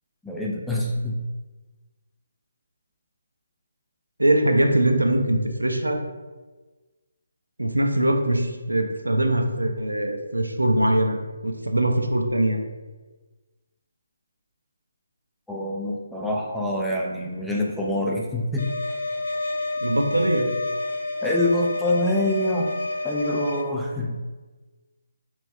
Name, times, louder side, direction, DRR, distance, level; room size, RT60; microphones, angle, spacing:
voice 1, 0.2-1.2 15.5-18.7 21.2-22.7 23.0-24.2, left 1 dB, ahead, -3 dB, 0.3 m, -25 dB
voice 2, 4.2-6.0 7.6-11.2 11.4-12.6 19.8-20.5, right 1 dB, 85° right, 3 dB, 0.5 m, -22 dB
sound 1, 18.6-23.6, left 2 dB, 60° left, 0.5 m, -29 dB
3.1 x 2.6 x 3.1 m, 1.3 s
figure-of-eight pair, 145°, 0 cm